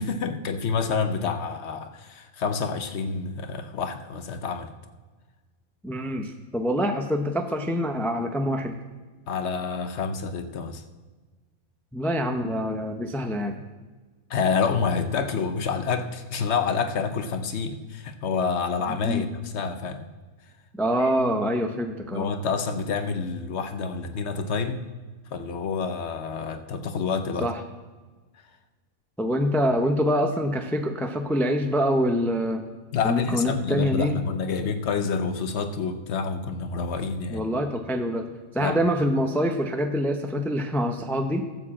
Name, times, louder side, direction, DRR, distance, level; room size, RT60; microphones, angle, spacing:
voice 1, 0.0-4.7 9.3-10.8 14.3-20.1 21.0-21.1 22.1-24.8 25.3-27.5 32.9-37.4 38.6-38.7, left 5 dB, 55° left, 8 dB, 1.0 m, -28 dB
voice 2, 5.8-8.8 11.9-13.6 18.9-19.2 20.8-22.3 27.4-27.6 29.2-32.6 33.0-34.2 37.3-38.3 38.5-41.5, equal, 5° left, 4 dB, 0.4 m, -25 dB
12.5 x 5.0 x 7.4 m, 1.3 s
omnidirectional pair, 1.5 m